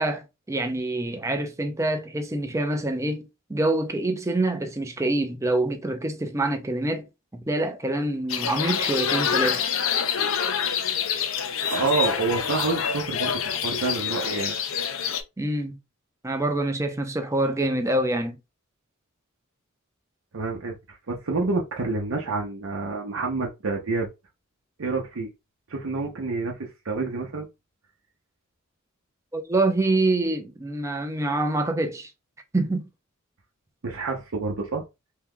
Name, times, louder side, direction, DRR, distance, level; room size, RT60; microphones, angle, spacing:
voice 1, 0.0-9.6 15.4-15.8 16.2-18.4 29.3-32.1 32.5-32.9, right 2 dB, 15° right, 0.5 m, -26 dB
sound 1, 8.3-15.2, left 7 dB, 70° left, 0.5 m, -26 dB
voice 2, 11.7-14.5 20.3-24.1 24.8-25.3 25.7-27.5 33.8-34.8, right 3 dB, 80° right, 0.7 m, -28 dB
2.8 x 2.3 x 3.5 m
head